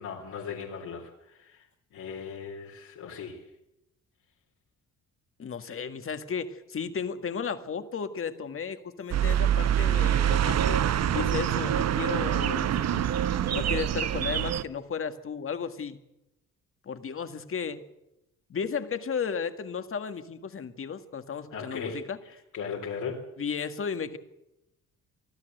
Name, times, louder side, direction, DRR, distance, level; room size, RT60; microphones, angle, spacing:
voice 1, 0.0-1.7 1.9-3.5 21.5-23.3, left 5 dB, 75° left, -1 dB, 4.0 m, -38 dB
voice 2, 5.4-10.8 11.1-13.1 13.5-16.0 16.8-17.8 18.5-22.2 23.4-24.2, left 6 dB, 45° left, 9 dB, 1.9 m, -34 dB
sound 1, 9.1-14.6, right 10 dB, 60° right, 0.9 m, -25 dB
24.5 x 13.5 x 8.0 m, 0.89 s
cardioid pair, 90°, 30 cm